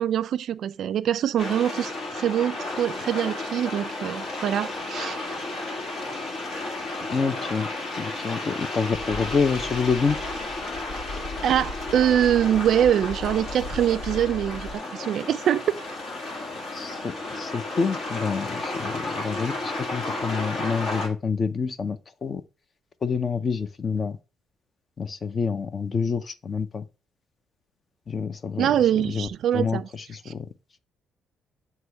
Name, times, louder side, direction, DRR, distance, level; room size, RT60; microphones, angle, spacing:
voice 1, 0.0-5.2 11.4-15.8 28.6-29.9, right 10 dB, 55° right, 0.3 m, -24 dB
sound 1, 1.4-21.1, left 2 dB, 55° left, 2.1 m, -33 dB
voice 2, 7.1-7.7 8.0-10.2 16.7-22.4 23.0-24.2 25.0-26.8 28.1-28.7 29.1-30.5, left 5 dB, 30° left, 0.5 m, -27 dB
sound 2, 8.9-14.8, left 1 dB, 80° left, 1.8 m, -38 dB
7.9 x 2.8 x 4.5 m
cardioid pair, 160°, 0 cm